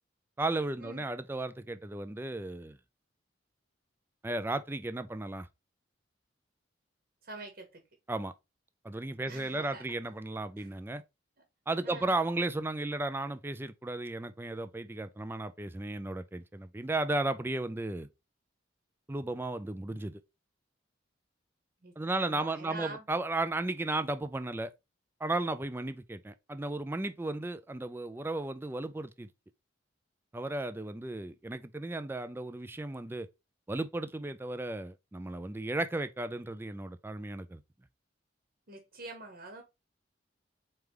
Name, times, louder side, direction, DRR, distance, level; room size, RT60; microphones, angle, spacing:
voice 1, 0.4-2.8 4.2-5.5 8.1-8.3 8.8-11.0 11.7-18.1 19.1-20.2 22.0-24.7 25.2-29.3 30.3-33.3 33.7-37.6, right 2 dB, 10° right, 0.4 m, -34 dB
voice 2, 7.2-7.8 9.3-10.0 10.6-10.7 11.8-12.1 21.8-23.0 38.7-39.6, right 3 dB, 55° right, 1.1 m, -45 dB
4.6 x 3.3 x 3.5 m
head